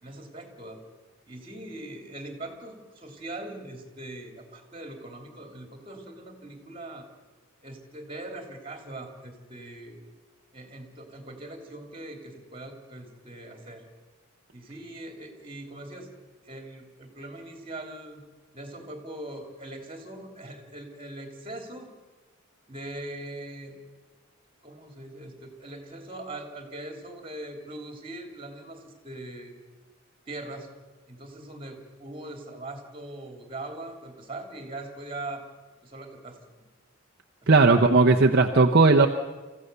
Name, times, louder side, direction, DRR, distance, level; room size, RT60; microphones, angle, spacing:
voice 1, 0.0-0.8 1.3-7.1 7.6-10.0 10.5-13.8 14.5-16.1 16.4-18.2 18.5-21.9 22.7-23.8 24.6-29.5 30.3-30.7 31.1-35.4 35.8-36.4 37.4-38.0, right 1 dB, 25° right, 4 dB, 3.3 m, -41 dB
voice 2, 37.5-39.1, right 3 dB, 50° right, 3 dB, 0.8 m, -17 dB
27.0 x 15.5 x 6.9 m, 1.3 s
head